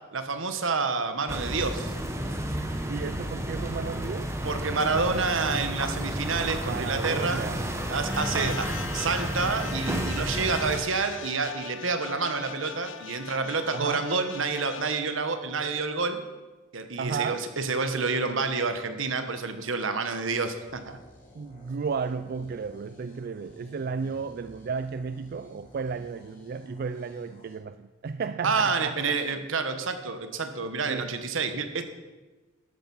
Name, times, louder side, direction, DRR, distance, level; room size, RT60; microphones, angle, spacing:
voice 1, 0.1-1.9 4.4-7.5 7.9-8.7 8.9-16.2 16.7-21.0 28.4-31.8, right 4 dB, 75° right, 9 dB, 1.2 m, -28 dB
sound 1, 1.3-10.8, right 1 dB, 15° right, 1.1 m, -31 dB
voice 2, 2.9-4.3 6.7-7.7 8.2-8.6 13.7-14.1 17.0-17.4 21.3-29.2 30.8-31.1, right 5 dB, 50° right, 11 dB, 0.3 m, -33 dB
sound 2, 8.1-14.9, left 8 dB, 70° left, 0.6 m, -41 dB
sound 3, 20.7-27.6, equal, 40° left, 2.8 m, -53 dB
13.0 x 8.8 x 5.5 m, 1.2 s
head